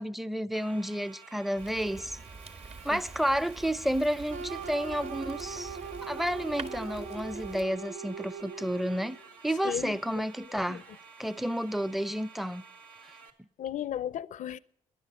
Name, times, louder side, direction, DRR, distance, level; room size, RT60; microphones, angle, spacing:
voice 1, 0.0-2.2 2.8-9.2 9.4-10.8 11.2-12.6, equal, ahead, 0.6 m, -31 dB
sound 1, 0.5-13.3, right 5 dB, 80° right, 1.4 m, -52 dB
Fire, 1.6-7.7, right 3 dB, 45° right, 1.4 m, -46 dB
sound 2, 4.3-9.2, right 5 dB, 65° right, 0.8 m, -40 dB
voice 2, 9.6-10.2 10.7-10.8 13.6-14.6, left 10 dB, 60° left, 0.5 m, -35 dB
11.5 x 10.5 x 9.8 m
hypercardioid pair, 45°, 14 cm